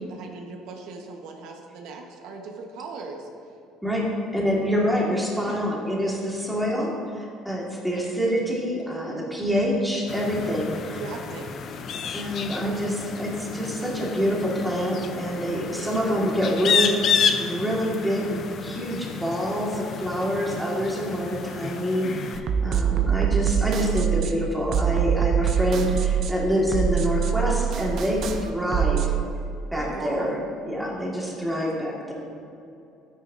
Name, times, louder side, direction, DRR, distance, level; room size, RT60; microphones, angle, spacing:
voice 1, 0.0-3.3 5.4-5.6 11.0-11.6 15.6-16.0 22.8-23.1 29.7-30.3, right 4 dB, 75° right, 2 dB, 1.3 m, -38 dB
voice 2, 3.8-11.0 12.1-29.1 29.7-32.1, equal, 5° right, -4 dB, 1.9 m, -26 dB
sound 1, 10.1-22.4, left 6 dB, 45° left, 0.6 m, -30 dB
sound 2, 22.3-29.2, right 9 dB, 50° right, 0.7 m, -24 dB
12.5 x 9.7 x 2.7 m, 2.7 s
cardioid pair, 130°, 0 cm